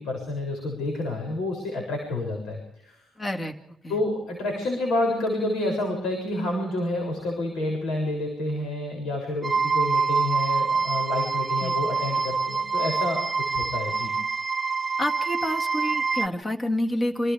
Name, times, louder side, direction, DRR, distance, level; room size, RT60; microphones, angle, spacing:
voice 1, 0.0-3.0 3.9-13.2 13.6-14.1, left 2 dB, 85° left, 1 dB, 7.1 m, -29 dB
voice 2, 3.2-4.0 11.6-11.8 15.0-17.3, left 1 dB, 25° left, 4 dB, 2.1 m, -28 dB
sound 1, 9.4-16.3, right 5 dB, 25° right, 1.0 m, -26 dB
29.0 x 27.5 x 3.5 m, 0.84 s
cardioid pair, 115°, 0 cm